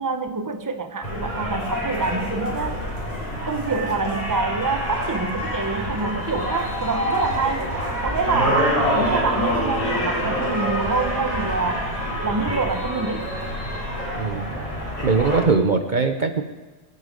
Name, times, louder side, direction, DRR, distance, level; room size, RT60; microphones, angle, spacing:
voice 1, 0.0-2.8 3.4-7.7 8.0-8.7 8.9-11.9 12.2-13.3, right 4 dB, 20° right, 7 dB, 0.9 m, -26 dB
sound 1, 1.0-15.4, equal, 35° left, 4.5 m, -26 dB
voice 2, 14.1-14.5 15.0-16.4, right 4 dB, 50° right, 7 dB, 1.0 m, -21 dB
24.0 x 8.4 x 5.2 m, 1.2 s
omnidirectional pair, 1.1 m